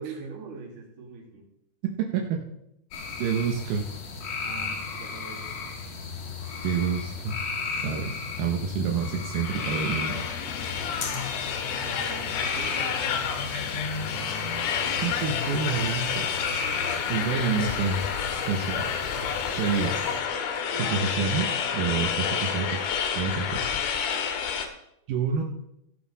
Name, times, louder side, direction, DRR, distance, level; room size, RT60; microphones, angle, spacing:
voice 1, 0.0-1.5 4.4-5.5 11.0-11.3 11.8-12.9, right 5 dB, 50° right, -3 dB, 3.7 m, -42 dB
sound 1, 2.9-20.2, left 4 dB, 55° left, 2.0 m, -35 dB
voice 2, 3.2-3.9 6.6-7.3 7.8-10.2 13.6-13.8 15.0-16.3 17.1-18.0 18.5-18.9 19.6-20.0 20.7-22.9 23.1-23.7 25.1-25.4, right 6 dB, 75° right, 1 dB, 2.0 m, -28 dB
sound 2, 9.4-24.7, left 7 dB, 75° left, 2.9 m, -30 dB
16.5 x 6.0 x 4.1 m, 0.78 s
omnidirectional pair, 4.8 m